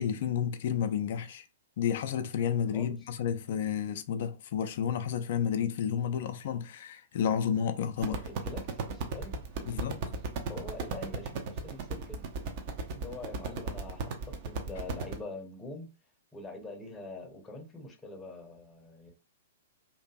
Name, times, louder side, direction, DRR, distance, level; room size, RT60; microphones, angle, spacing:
voice 1, 0.0-1.4 1.8-8.2 9.7-10.0, left 8 dB, 50° left, 0.3 m, -31 dB
sound 1, 8.0-15.2, right 4 dB, 45° right, 0.5 m, -36 dB
voice 2, 8.1-9.9 10.5-12.3 12.9-15.9 16.3-19.1, left 2 dB, 15° left, 0.6 m, -44 dB
2.7 x 2.5 x 2.3 m
figure-of-eight pair, 110°, 0 cm